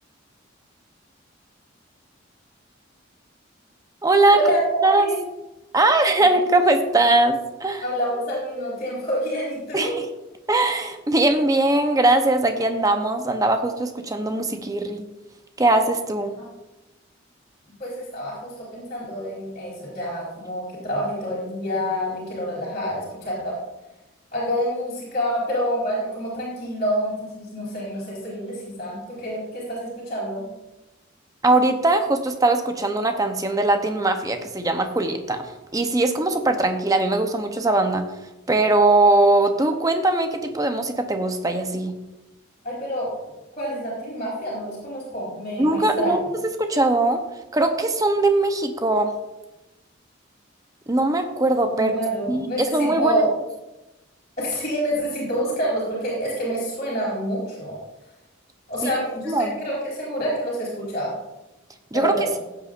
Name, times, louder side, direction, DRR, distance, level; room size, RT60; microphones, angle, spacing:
voice 1, 4.0-4.4 4.8-5.1 5.7-7.8 9.7-10.1 10.5-15.0 15.6-16.3 31.4-38.1 38.5-42.0 45.6-46.2 46.6-47.2 47.5-49.1 50.9-51.9 52.3-53.2 58.8-58.9 59.3-59.5 61.9-62.1, right 2 dB, 15° right, 6 dB, 0.8 m, -20 dB
voice 2, 4.9-5.3 7.8-10.0 16.4-16.5 17.8-23.6 24.3-30.5 42.6-43.1 43.6-46.1 51.7-53.3 54.4-57.8 58.7-61.1 61.9-62.3, equal, 35° left, -10 dB, 3.7 m, -27 dB
15.0 x 8.4 x 2.5 m, 0.99 s
head